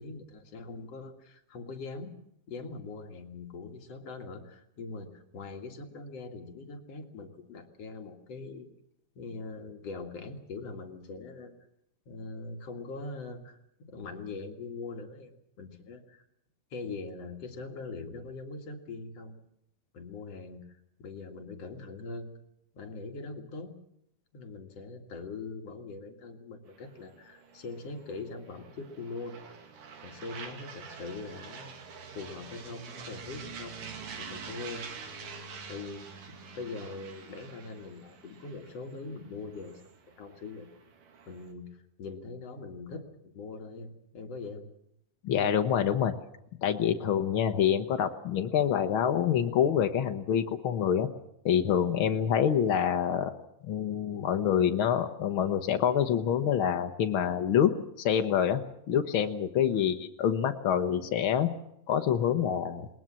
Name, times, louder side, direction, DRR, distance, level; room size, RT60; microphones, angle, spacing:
voice 1, 0.0-2.1 2.5-8.7 9.2-11.5 12.1-15.3 15.6-16.2 16.7-19.3 19.9-20.6 21.0-22.3 22.7-23.7 24.3-29.4 30.0-31.8 32.1-33.8 34.2-34.9 35.7-36.1 36.6-39.8 40.2-40.7 41.3-41.7 42.0-43.9 44.1-44.6 59.7-60.0, left 3 dB, 50° left, 3 dB, 2.8 m, -42 dB
sound 1, 26.7-41.5, right 5 dB, 70° right, 3.8 m, -46 dB
voice 2, 45.2-46.1 46.6-51.1 51.4-53.3 53.6-58.6 58.9-61.5 61.9-62.9, left 9 dB, 90° left, 7 dB, 1.1 m, -26 dB
20.5 x 20.5 x 7.5 m, 0.78 s
omnidirectional pair, 3.9 m